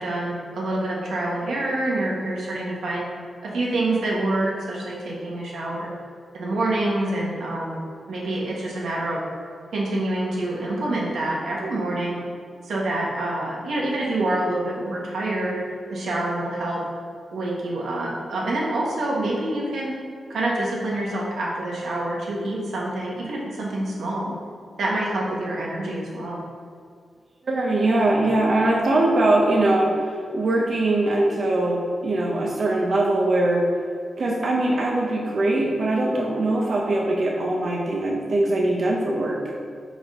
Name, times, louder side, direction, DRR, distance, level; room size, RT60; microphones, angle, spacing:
voice 1, 0.0-3.1 3.4-5.9 6.3-9.2 9.7-12.2 12.6-15.6 15.9-16.8 17.3-19.9 20.3-24.4 24.8-26.4, right 1 dB, 90° right, -4 dB, 1.4 m, -26 dB
voice 2, 27.4-33.6 34.2-39.4, right 2 dB, 45° right, -2 dB, 0.7 m, -22 dB
4.9 x 4.5 x 4.9 m, 2.2 s
wide cardioid pair, 160°, 0 cm